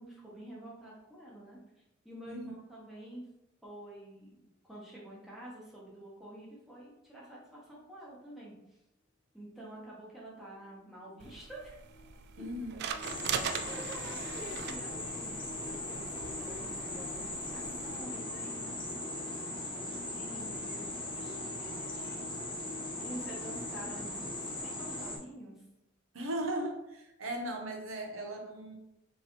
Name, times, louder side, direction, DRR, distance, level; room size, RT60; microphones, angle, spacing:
voice 1, 0.0-1.6 2.0-3.2 3.6-8.5 9.3-11.8 13.5-19.5 19.8-22.3 23.0-25.6, right 1 dB, ahead, -6 dB, 1.0 m, -48 dB
sound 1, 10.2-10.3 10.6-23.8, left 4 dB, 60° left, 0.5 m, -53 dB
sound 2, 11.2-18.0, right 7 dB, 55° right, 0.3 m, -41 dB
voice 2, 12.4-12.8 26.1-28.8, right 1 dB, 80° right, 2 dB, 0.9 m, -37 dB
sound 3, 13.0-25.2, left 1 dB, 25° left, 1.1 m, -39 dB
4.4 x 3.2 x 3.1 m, 0.87 s
head